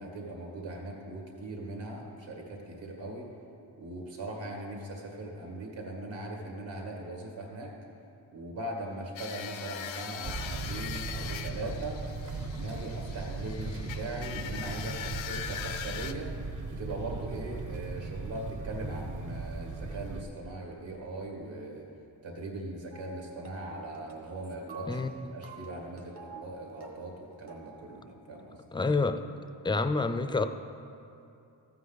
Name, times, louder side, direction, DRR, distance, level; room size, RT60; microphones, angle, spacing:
voice 1, 0.0-3.3 3.8-7.7 8.3-12.0 12.5-16.3 16.7-21.9 22.2-25.0 25.3-28.6, right 2 dB, 75° right, 0 dB, 2.2 m, -40 dB
sound 1, 9.2-16.1, left 9 dB, 85° left, 0.7 m, -41 dB
sound 2, 10.2-20.2, right 3 dB, 40° right, 0.9 m, -38 dB
sound 3, 22.9-28.1, right 5 dB, 60° right, 1.5 m, -49 dB
voice 2, 24.9-25.4 28.7-29.2 29.6-30.4, left 3 dB, 10° left, 9 dB, 0.4 m, -28 dB
14.5 x 8.4 x 4.0 m, 2.7 s
wide cardioid pair, 95°, 45 cm